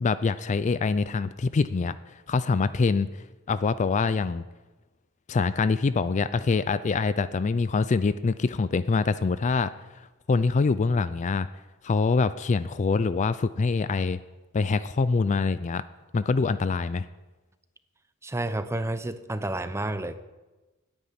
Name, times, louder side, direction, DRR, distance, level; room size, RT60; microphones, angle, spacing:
voice 1, 0.0-4.4 5.3-11.5 11.8-14.2 14.5-15.8 16.1-17.1, left 4 dB, 35° left, 14 dB, 0.4 m, -25 dB
voice 2, 18.2-20.2, right 1 dB, 15° right, 11 dB, 0.6 m, -30 dB
9.9 x 8.9 x 9.4 m, 1.2 s
head